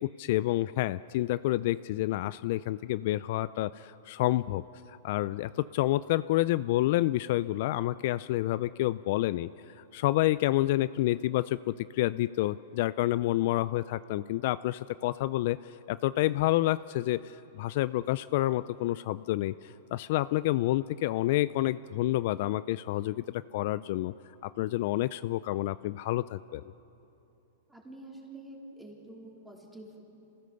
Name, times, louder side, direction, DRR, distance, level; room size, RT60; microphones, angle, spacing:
voice 1, 0.0-4.6 5.0-9.5 9.9-15.6 15.9-24.1 24.4-26.6, left 16 dB, 55° left, 15 dB, 0.4 m, -29 dB
voice 2, 27.7-30.0, right 2 dB, 5° right, -1 dB, 3.6 m, -47 dB
27.5 x 15.5 x 6.8 m, 2.9 s
hypercardioid pair, 140°, 0 cm